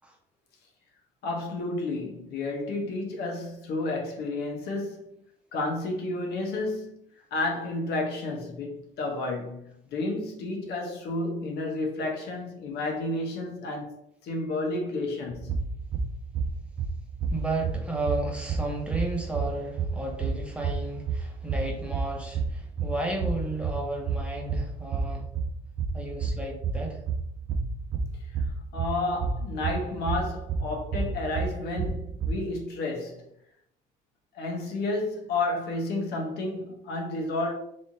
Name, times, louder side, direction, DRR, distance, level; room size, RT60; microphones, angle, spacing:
voice 1, 1.2-5.1 5.5-7.0 7.3-15.6 28.3-28.4 28.7-33.3 34.3-37.6, left 2 dB, 75° left, 1.0 m, -31 dB
sound 1, 15.3-32.4, right 4 dB, 50° right, 0.4 m, -31 dB
voice 2, 17.3-25.3 25.9-27.0, right 2 dB, 5° right, 0.8 m, -33 dB
3.4 x 3.0 x 2.7 m
cardioid pair, 110°, 17 cm